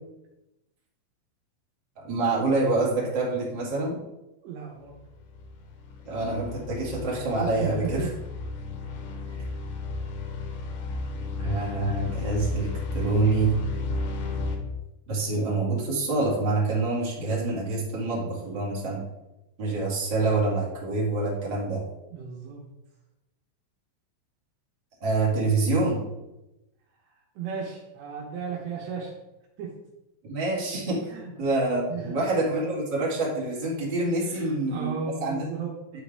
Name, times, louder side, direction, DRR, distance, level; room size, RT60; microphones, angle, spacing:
voice 1, 2.0-3.9 6.0-8.1 11.4-13.5 15.1-19.0 19.6-21.8 25.0-26.0 30.2-31.0 31.4-35.4 35.9-36.0, right 3 dB, 45° right, -5 dB, 1.4 m, -26 dB
voice 2, 4.4-5.0 7.4-8.1 22.1-22.6 27.0-29.1 29.6-29.7 31.1-31.3 31.9-32.2 34.2-36.0, right 6 dB, 75° right, -1 dB, 2.8 m, -35 dB
sound 1, 4.9-14.6, left 3 dB, 70° left, 2.5 m, -33 dB
10.5 x 5.0 x 3.4 m, 0.95 s
omnidirectional pair, 5.6 m